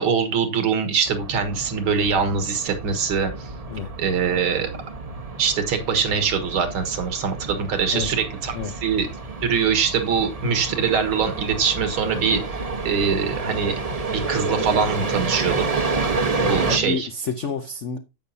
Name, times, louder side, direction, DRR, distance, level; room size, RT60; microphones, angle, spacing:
voice 1, 0.0-3.5 4.0-4.7 5.4-8.6 8.8-9.1 9.4-13.8 14.1-15.7 16.4-17.1, right 6 dB, 70° right, 2.3 m, -23 dB
sound 1, 1.0-16.8, right 3 dB, 30° right, 0.6 m, -29 dB
voice 2, 16.6-18.0, left 5 dB, 85° left, 0.6 m, -29 dB
10.5 x 8.3 x 2.8 m
omnidirectional pair, 2.4 m